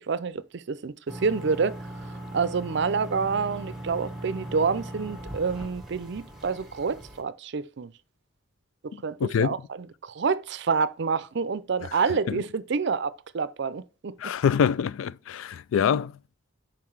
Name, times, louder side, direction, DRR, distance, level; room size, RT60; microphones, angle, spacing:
voice 1, 0.0-1.8 2.3-7.9 8.8-9.6 10.0-14.3, right 5 dB, 60° right, 0.5 m, -28 dB
sound 1, 1.1-7.2, right 1 dB, ahead, 1.2 m, -39 dB
voice 2, 9.2-9.5 12.3-12.4 14.2-16.1, left 7 dB, 85° left, 0.3 m, -25 dB
5.8 x 4.6 x 4.7 m
head